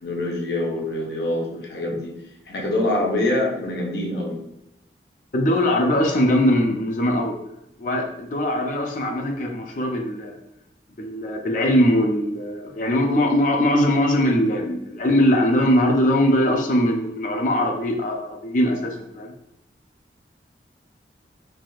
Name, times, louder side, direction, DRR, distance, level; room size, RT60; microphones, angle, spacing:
voice 1, 0.0-2.1 2.5-4.4, left 1 dB, 70° left, -2 dB, 0.8 m, -25 dB
voice 2, 5.3-7.3 7.8-10.4 11.0-19.3, left 1 dB, 45° left, 2 dB, 0.5 m, -21 dB
3.3 x 2.6 x 2.3 m, 0.82 s
head